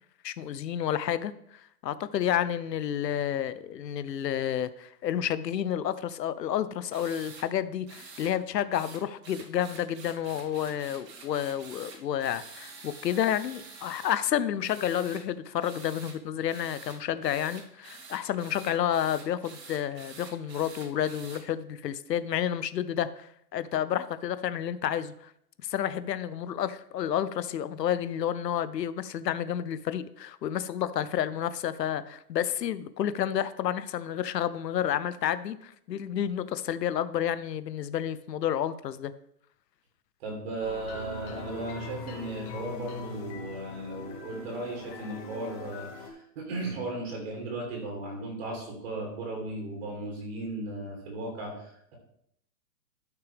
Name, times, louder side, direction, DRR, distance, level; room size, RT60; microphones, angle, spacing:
voice 1, 0.2-25.3 25.6-39.1, left 10 dB, 80° left, 14 dB, 0.7 m, -30 dB
sound 1, 6.9-7.5 7.9-8.3 8.7-14.2 14.6-15.2 15.6-16.2 16.5-21.4, right 4 dB, 75° right, 2.7 m, -47 dB
voice 2, 40.2-52.0, right 2 dB, 40° right, 0 dB, 2.4 m, -36 dB
sound 2, 40.6-46.1, left 5 dB, 20° left, 1.0 m, -42 dB
13.0 x 6.0 x 3.4 m, 0.71 s
hypercardioid pair, 160°, 49 cm